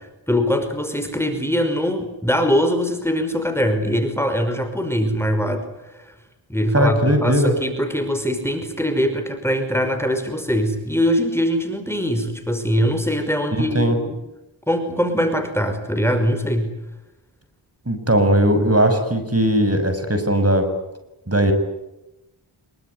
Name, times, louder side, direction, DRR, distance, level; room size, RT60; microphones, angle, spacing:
voice 1, 0.3-6.1 6.5-14.2 14.7-16.7, equal, 5° left, 8 dB, 5.3 m, -22 dB
voice 2, 6.7-7.5 13.5-14.0 17.8-20.7 21.3-21.5, right 1 dB, 30° right, 8 dB, 6.6 m, -18 dB
26.0 x 24.0 x 9.6 m, 0.93 s
cardioid pair, 45°, 48 cm